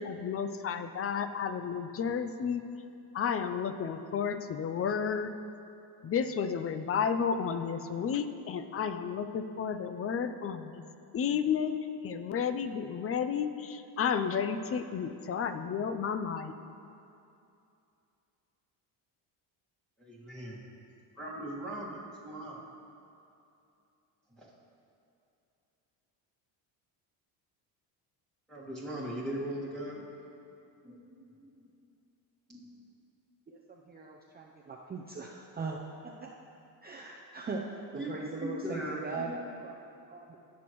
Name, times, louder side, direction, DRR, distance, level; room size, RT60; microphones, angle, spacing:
voice 1, 0.0-2.6 3.1-5.3 6.0-10.8 11.1-16.5, left 7 dB, 30° left, 10 dB, 0.4 m, -32 dB
voice 2, 20.0-20.6 21.2-22.7 24.3-24.5 28.5-30.0 30.8-31.7 32.5-32.7 37.9-39.4, right 1 dB, ahead, -9 dB, 1.8 m, -39 dB
voice 3, 33.5-35.8 36.0-36.3 36.8-37.7 37.9-39.3 39.6-39.8 40.1-40.4, right 4 dB, 20° right, -2 dB, 0.6 m, -40 dB
16.5 x 6.2 x 3.1 m, 2.7 s
cardioid pair, 105°, 47 cm